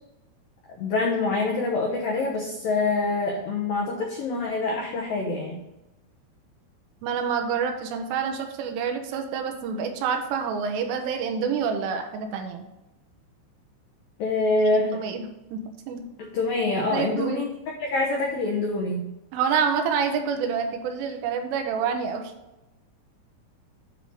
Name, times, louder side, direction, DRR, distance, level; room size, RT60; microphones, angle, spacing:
voice 1, 0.8-5.6 14.2-15.0 16.2-17.5 17.8-19.1, left 3 dB, 85° left, -1 dB, 2.0 m, -25 dB
voice 2, 7.0-12.6 14.7-15.2 15.5-16.0 16.9-17.4 19.3-22.3, right 6 dB, 85° right, 5 dB, 3.4 m, -27 dB
9.6 x 3.9 x 6.4 m, 0.96 s
omnidirectional pair, 5.8 m